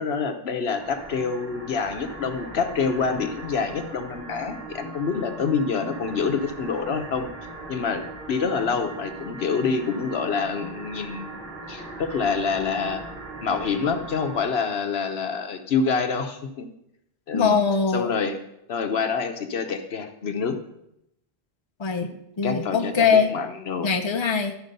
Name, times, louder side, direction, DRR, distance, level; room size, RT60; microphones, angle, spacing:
voice 1, 0.0-7.3 7.7-11.3 11.7-13.0 13.4-16.7 17.3-17.6 17.9-18.4 18.7-20.6 22.1-22.2 22.4-23.9, left 5 dB, 75° left, 7 dB, 1.1 m, -27 dB
sound 1, 0.8-14.5, right 2 dB, 70° right, 2.7 m, -39 dB
voice 2, 17.3-18.1 21.8-22.1 22.4-23.3 23.8-24.6, left 6 dB, 30° left, 4 dB, 0.7 m, -22 dB
13.0 x 5.0 x 5.3 m, 0.79 s
omnidirectional pair, 1.1 m